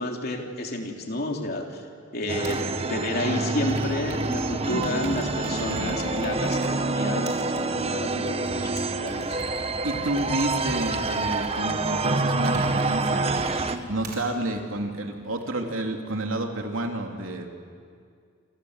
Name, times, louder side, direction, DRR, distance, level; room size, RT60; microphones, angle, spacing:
voice 1, 0.0-1.8 2.1-9.5, left 1 dB, 50° left, 2 dB, 3.4 m, -31 dB
sound 1, 2.3-13.8, right 3 dB, 30° right, 1.2 m, -27 dB
Computer keyboard, 2.4-2.7 3.5-6.7 7.3-14.2 14.9-15.4, right 1 dB, 50° right, 5.2 m, -39 dB
voice 2, 9.8-13.4 13.9-17.5, right 1 dB, 90° right, 3 dB, 3.1 m, -29 dB
28.0 x 26.0 x 8.1 m, 2.2 s
head